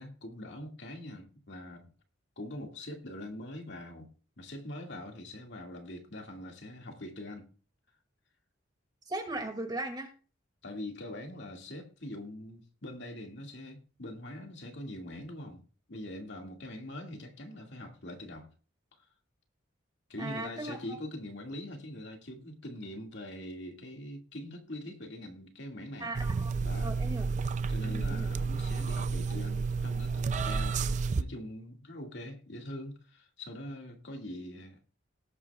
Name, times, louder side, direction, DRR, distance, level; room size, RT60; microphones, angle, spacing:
voice 1, 0.0-1.9 2.4-4.1 4.4-7.5 10.6-18.5 19.0-19.1 20.1-26.1 26.6-26.9 27.7-30.8 31.2-34.9, left 1 dB, 65° left, 2.1 m, -43 dB
voice 2, 9.1-10.1 20.2-21.0 26.0-26.5 26.8-27.3 27.8-28.3, right 2 dB, 20° right, 2.2 m, -38 dB
sound 1, 26.1-31.2, right 4 dB, 40° right, 0.4 m, -31 dB
18.5 x 8.8 x 2.4 m
head